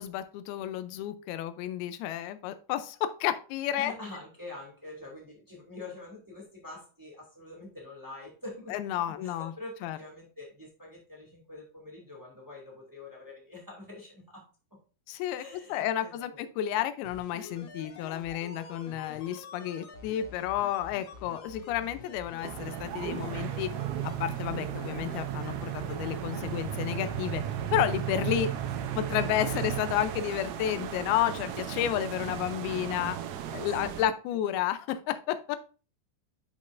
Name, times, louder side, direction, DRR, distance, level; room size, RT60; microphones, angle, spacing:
voice 1, 0.0-3.9 8.7-9.5 9.8-10.0 15.1-15.4 15.7-23.7 24.0-27.4 27.7-28.5 28.9-33.2 33.5-35.6, left 11 dB, 85° left, 11 dB, 2.5 m, -31 dB
voice 2, 3.8-8.8 9.2-14.8 15.4-16.5 33.2-33.4 33.8-34.1, left 2 dB, 25° right, -3 dB, 0.4 m, -45 dB
sound 1, 17.0-29.6 29.9-30.0, left 5 dB, 65° left, 2.2 m, -47 dB
sound 2, 22.4-34.0, right 11 dB, 75° right, 2.0 m, -35 dB
10.5 x 5.3 x 2.5 m, 0.37 s
omnidirectional pair, 4.5 m